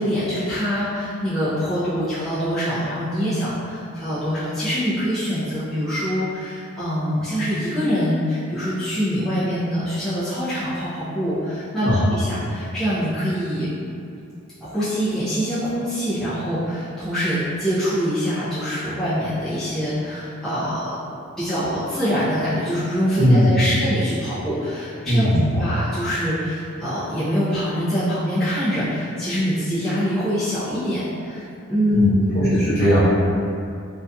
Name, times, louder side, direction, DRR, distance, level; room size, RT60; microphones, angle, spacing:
voice 1, 0.0-13.7 14.6-21.0 21.4-32.6, equal, ahead, -15 dB, 0.4 m, -24 dB
voice 2, 23.2-23.5 25.0-25.5 31.9-32.1 32.3-33.0, equal, 45° left, -11 dB, 0.8 m, -18 dB
2.6 x 2.4 x 2.2 m, 2.5 s
head